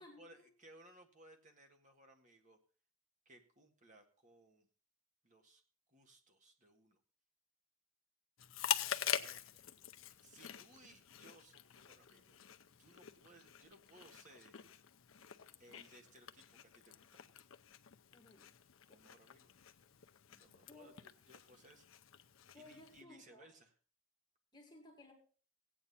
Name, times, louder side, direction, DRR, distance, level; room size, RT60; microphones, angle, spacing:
voice 1, 0.0-2.6 3.2-4.7 5.2-5.6 5.9-7.0 9.0-9.6 10.2-12.4 12.8-14.5 15.6-17.2 18.9-19.5 20.3-20.9 21.3-21.9 22.5-23.7, right 1 dB, 35° right, 4 dB, 1.6 m, -63 dB
Chewing mastication, 8.4-23.0, left 10 dB, 70° left, 0.6 m, -45 dB
voice 2, 18.1-18.5 20.6-20.9 22.5-23.5 24.5-25.1, left 2 dB, 20° left, 0 dB, 2.3 m, -58 dB
16.0 x 8.9 x 4.2 m, 0.40 s
head